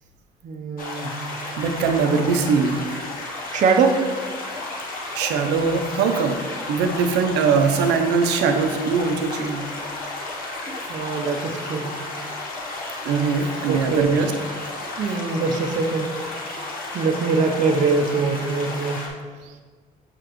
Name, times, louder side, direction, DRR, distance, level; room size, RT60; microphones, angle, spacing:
voice 1, 0.4-1.1 3.5-4.1 10.9-11.9 13.7-14.2 15.0-16.2 16.9-19.0, right 4 dB, 45° right, 4 dB, 0.6 m, -22 dB
sound 1, 0.8-19.1, left 2 dB, 60° left, 1.1 m, -33 dB
voice 2, 1.6-2.8 5.1-6.4 6.7-9.6 13.0-14.3, right 5 dB, 85° right, 6 dB, 0.6 m, -21 dB
6.4 x 4.9 x 3.0 m, 1.5 s
cardioid pair, 110°, 17 cm